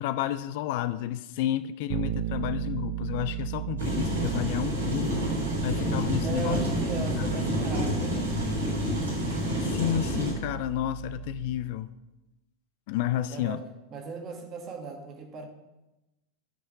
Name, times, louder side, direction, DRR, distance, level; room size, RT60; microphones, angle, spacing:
voice 1, 0.0-5.2 5.6-6.6 7.0-7.3 9.6-11.9 12.9-13.6, left 13 dB, 50° left, 14 dB, 0.4 m, -31 dB
Bass guitar, 1.9-11.8, right 14 dB, 50° right, 0.5 m, -36 dB
sound 1, 3.8-10.3, equal, 70° right, 4.0 m, -29 dB
voice 2, 6.2-8.8 13.1-13.6 13.9-15.5, right 4 dB, 30° right, 3 dB, 1.8 m, -38 dB
10.0 x 5.6 x 6.8 m, 1.0 s
figure-of-eight pair, 90°, 0 cm